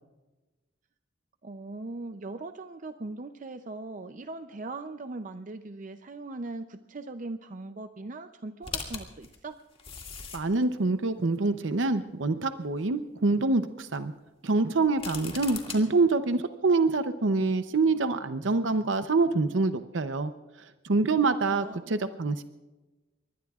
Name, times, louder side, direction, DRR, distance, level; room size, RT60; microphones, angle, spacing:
voice 1, 1.4-9.6 21.5-22.0, right 2 dB, 45° right, 9 dB, 0.6 m, -40 dB
sound 1, 8.6-10.6 11.3-11.4 14.8-15.8, left 5 dB, 30° left, 2.2 m, -38 dB
voice 2, 10.3-14.1 14.4-20.3 20.8-22.4, right 3 dB, 80° right, 10 dB, 0.7 m, -26 dB
24.5 x 20.5 x 2.4 m, 1.1 s
head